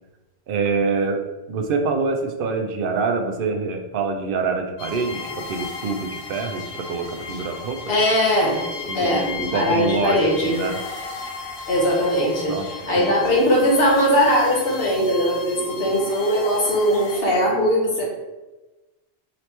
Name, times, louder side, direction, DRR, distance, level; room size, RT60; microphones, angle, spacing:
voice 1, 0.5-1.2 1.5-7.8 8.9-10.8 12.5-12.7 13.0-13.1, right 4 dB, 65° right, 4 dB, 0.7 m, -25 dB
sound 1, 4.8-17.2, left 4 dB, 85° left, 0.9 m, -35 dB
voice 2, 7.9-8.6 8.9-9.3 9.5-10.6 11.7-18.0, equal, 65° left, -3 dB, 1.3 m, -20 dB
3.9 x 3.2 x 2.9 m, 1.1 s
omnidirectional pair, 1.1 m